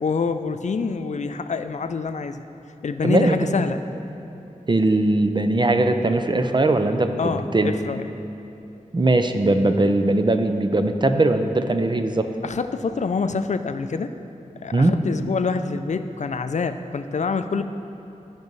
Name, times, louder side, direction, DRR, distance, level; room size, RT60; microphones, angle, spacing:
voice 1, 0.0-2.4 2.8-3.8 7.2-8.1 12.4-14.1 14.6-17.6, left 5 dB, 60° left, 9 dB, 0.4 m, -26 dB
voice 2, 3.0-3.4 4.7-7.7 8.9-12.3 14.7-15.0, right 2 dB, 35° right, 7 dB, 0.6 m, -20 dB
14.5 x 5.3 x 3.1 m, 2.9 s
cardioid pair, 45°, 13 cm